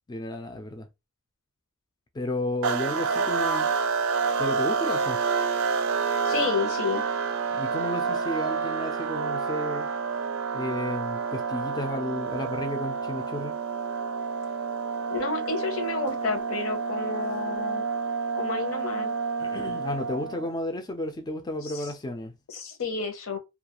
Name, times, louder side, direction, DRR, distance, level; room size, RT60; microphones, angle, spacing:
voice 1, 0.1-0.9 2.1-3.7 4.4-5.2 7.5-9.9 10.5-13.6 19.4-22.3, left 1 dB, 20° left, 0.3 m, -32 dB
sound 1, 2.6-20.5, right 5 dB, 90° right, 0.4 m, -28 dB
voice 2, 6.2-7.0 15.1-17.8 18.3-19.1 21.7-21.8 22.5-23.4, left 4 dB, 75° left, 0.7 m, -30 dB
2.3 x 2.3 x 2.9 m
head